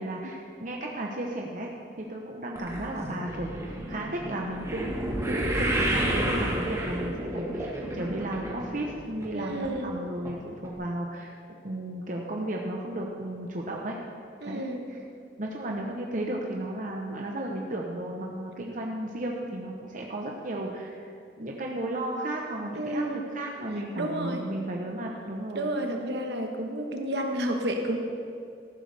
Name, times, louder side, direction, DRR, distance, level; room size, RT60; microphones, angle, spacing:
voice 1, 0.0-1.7 1.9-4.9 5.3-11.3 11.6-14.0 14.5-14.6 14.9-15.0 15.4-21.1 21.4-25.7, right 1 dB, 45° right, -1 dB, 1.0 m, -34 dB
sound 1, 2.6-8.9 9.2-9.7 10.3-10.4 10.6-10.7, right 1 dB, 15° right, 1.5 m, -30 dB
voice 2, 9.3-9.9 14.4-14.8 22.7-23.2 23.9-24.4 25.5-28.0, right 1 dB, 65° right, 3 dB, 1.2 m, -30 dB
14.0 x 11.5 x 3.5 m, 2.4 s
head